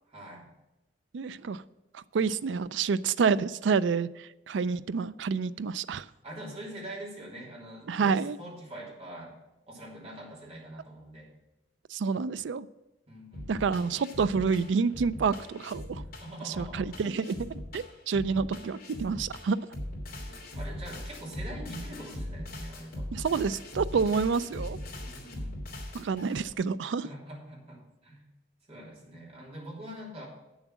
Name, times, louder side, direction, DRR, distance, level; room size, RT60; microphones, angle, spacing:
voice 1, 0.1-0.5 6.2-9.3 9.7-11.3 13.1-13.7 16.2-16.9 20.5-23.1 25.0-25.6 27.0-28.3 28.7-30.3, right 1 dB, 35° right, -4 dB, 3.2 m, -44 dB
voice 2, 1.1-1.6 1.9-6.1 7.9-8.4 11.9-12.7 13.5-16.0 16.5-19.6 23.1-24.8 25.9-27.1, right 5 dB, 70° right, 16 dB, 0.4 m, -28 dB
sound 1, 13.3-26.5, left 1 dB, 55° left, 3.0 m, -40 dB
9.2 x 7.2 x 6.0 m, 0.99 s
head